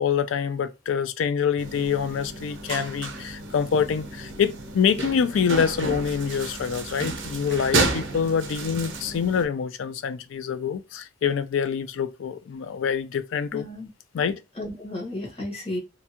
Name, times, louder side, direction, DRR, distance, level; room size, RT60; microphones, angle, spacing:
voice 1, 0.0-13.7 14.1-14.4, left 7 dB, 80° left, 0.4 m, -26 dB
sound 1, 1.6-9.4, right 3 dB, 65° right, 0.6 m, -31 dB
voice 2, 13.5-13.9 14.6-15.8, left 1 dB, 30° left, 1.2 m, -33 dB
2.7 x 2.3 x 2.8 m
head